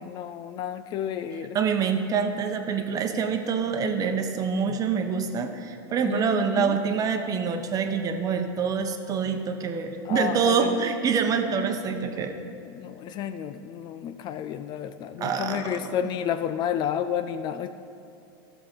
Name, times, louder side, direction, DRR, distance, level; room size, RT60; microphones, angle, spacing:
voice 1, 0.0-1.6 6.1-6.8 10.1-10.8 12.6-17.7, left 9 dB, 35° left, 10 dB, 0.4 m, -31 dB
voice 2, 1.5-12.3 15.2-15.8, right 6 dB, 30° right, 6 dB, 0.9 m, -26 dB
13.5 x 6.9 x 5.3 m, 2.6 s
supercardioid pair, 125°, 13 cm